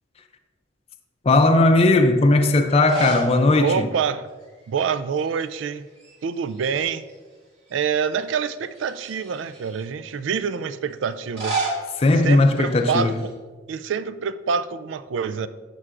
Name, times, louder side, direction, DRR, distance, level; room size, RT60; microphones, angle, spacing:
voice 1, 1.2-3.9 12.0-13.2, left 2 dB, 30° left, 0.4 m, -17 dB
sound 1, 2.7-3.4 3.7-3.8 5.2-5.7 6.0-7.1 7.7-7.8 8.7-9.8 11.1-13.3, right 3 dB, 65° right, 2.2 m, -32 dB
voice 2, 3.6-4.3 4.7-5.9 6.2-7.0 7.7-11.6 12.2-13.3 13.7-15.5, right 6 dB, 90° right, 0.4 m, -26 dB
11.0 x 6.0 x 2.5 m
head